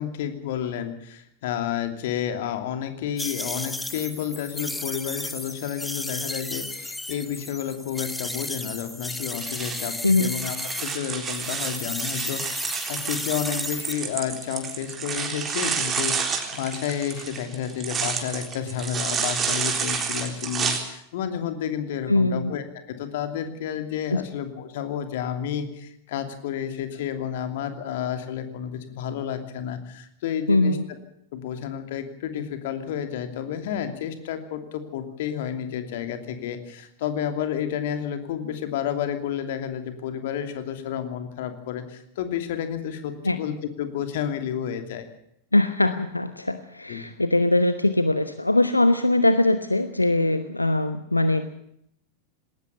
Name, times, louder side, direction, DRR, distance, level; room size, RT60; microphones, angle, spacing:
voice 1, 0.0-22.6 23.0-30.8 31.3-45.1 46.9-47.1, left 9 dB, 55° left, 8 dB, 2.9 m, -31 dB
sound 1, 3.2-11.0 11.3-13.9, left 1 dB, 5° left, 1.4 m, -34 dB
sound 2, 9.3-20.8, right 6 dB, 25° right, 4.0 m, -30 dB
voice 2, 22.1-22.5 24.1-24.2 30.5-30.9 43.2-43.4 45.5-51.5, left 2 dB, 85° left, 11 dB, 1.0 m, -21 dB
20.0 x 18.5 x 7.0 m, 0.75 s
figure-of-eight pair, 90°, 0 cm